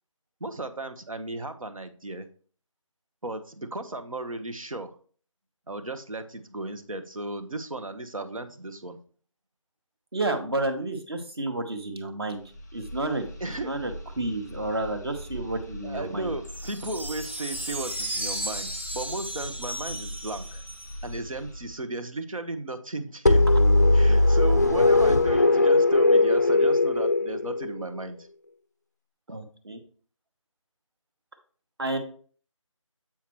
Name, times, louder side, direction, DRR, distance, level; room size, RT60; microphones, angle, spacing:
voice 1, 0.4-2.3 3.2-5.0 5.7-9.0 13.4-13.7 15.8-20.6 21.0-23.5 23.9-28.3, right 2 dB, 85° right, 8 dB, 1.0 m, -35 dB
voice 2, 10.1-12.4 12.7-13.3 13.6-16.3 29.3-29.8 31.8-32.0, right 2 dB, 50° right, 5 dB, 1.1 m, -30 dB
sound 1, 12.2-21.9, equal, 5° left, 0.8 m, -41 dB
sound 2, 16.5-21.2, right 1 dB, 20° right, 0.5 m, -35 dB
sound 3, 23.3-28.0, left 2 dB, 30° left, 0.4 m, -19 dB
7.3 x 5.8 x 3.0 m, 0.43 s
figure-of-eight pair, 165°, 17 cm